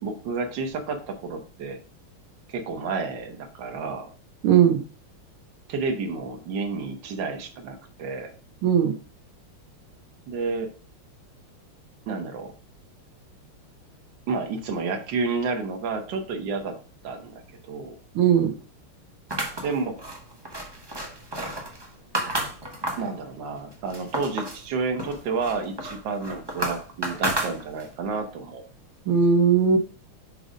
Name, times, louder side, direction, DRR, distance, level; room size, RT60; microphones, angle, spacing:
voice 1, 0.0-1.8 2.5-4.1 5.7-8.3 10.3-10.7 12.1-12.5 14.3-16.8 17.0-17.4 17.7-18.0 19.6-20.0 23.0-28.6, right 4 dB, 60° right, 4 dB, 1.7 m, -30 dB
voice 2, 4.4-4.8 8.6-8.9 18.1-18.5 29.1-29.8, right 7 dB, 80° right, 4 dB, 1.7 m, -18 dB
sound 1, 19.3-23.1 23.6-24.6 25.0-28.0, right 1 dB, 20° right, 0.7 m, -31 dB
6.6 x 4.0 x 5.0 m, 0.39 s
omnidirectional pair, 2.3 m